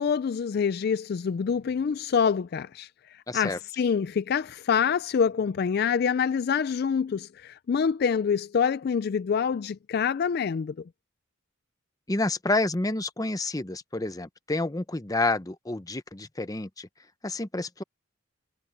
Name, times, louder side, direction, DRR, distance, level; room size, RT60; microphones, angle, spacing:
voice 1, 0.0-10.7, left 6 dB, 50° left, 0.3 m, -26 dB
voice 2, 3.3-3.6 12.1-16.9 17.2-17.8, left 2 dB, 15° left, 0.8 m, -29 dB
head